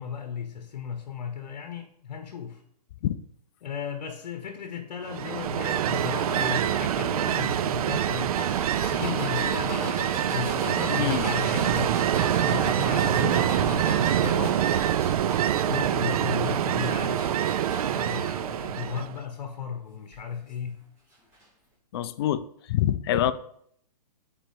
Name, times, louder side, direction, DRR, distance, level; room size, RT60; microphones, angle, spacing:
voice 1, 0.0-2.6 3.6-8.5 8.8-14.6 15.7-17.2 17.8-20.8, left 7 dB, 65° left, 5 dB, 1.0 m, -35 dB
Ocean, 5.1-19.2, right 10 dB, 60° right, 0.4 m, -25 dB
sound 1, 8.3-18.0 18.4-19.0 20.1-20.2 21.3-21.4, right 1 dB, 10° right, 2.2 m, -39 dB
voice 2, 10.9-11.2 21.9-22.4 22.7-23.3, left 12 dB, 35° left, 13 dB, 0.4 m, -25 dB
5.1 x 4.4 x 5.2 m, 0.67 s
hypercardioid pair, 145°, 21 cm